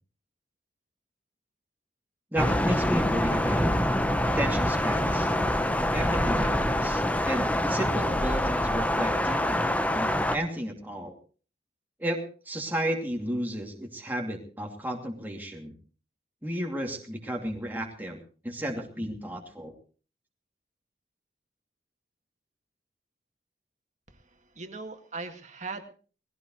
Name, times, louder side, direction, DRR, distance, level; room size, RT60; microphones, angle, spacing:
voice 1, 2.3-3.7 4.3-5.3 5.9-11.1 12.0-15.7 16.4-18.2 18.4-19.7, equal, 10° right, 0 dB, 2.7 m, -33 dB
Thunder, 2.4-10.4, left 1 dB, 10° left, 1.0 m, -25 dB
voice 2, 24.1-25.8, right 3 dB, 45° right, 5 dB, 2.1 m, -40 dB
20.5 x 16.5 x 3.2 m, 0.38 s
head